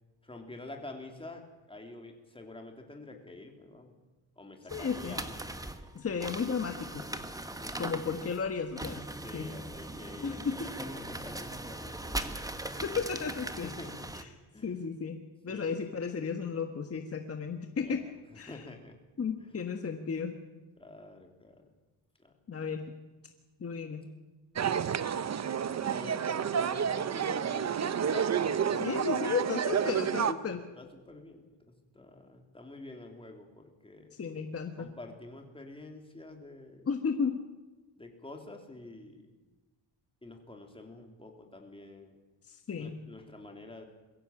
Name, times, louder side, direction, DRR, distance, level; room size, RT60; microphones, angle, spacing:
voice 1, 0.2-1.4 1.7-4.0 4.4-5.3 7.5-7.8 9.2-12.4 13.6-14.1 14.5-14.8 15.5-15.9 17.8-19.0 19.4-19.5 20.8-21.6 22.2-22.3 25.8-29.0 30.4-31.5 31.9-34.2 34.8-36.9 38.0-39.3 40.2-42.2 42.8-43.8, left 2 dB, 10° left, 3 dB, 3.3 m, -48 dB
voice 2, 4.7-5.2 5.9-7.0 7.8-9.0 9.3-9.5 10.2-10.5 12.8-13.7 14.2-14.3 14.6-18.0 18.3-18.6 19.2-20.3 22.5-22.8 23.6-24.0 28.8-30.6 34.2-34.9 36.9-37.4 42.5-43.0, left 6 dB, 30° left, 5 dB, 1.5 m, -34 dB
sound 1, 4.7-14.2, right 1 dB, 10° right, 1.3 m, -40 dB
sound 2, 24.6-30.3, right 8 dB, 40° right, 0.9 m, -30 dB
23.0 x 15.5 x 8.7 m, 1.2 s
cardioid pair, 135°, 44 cm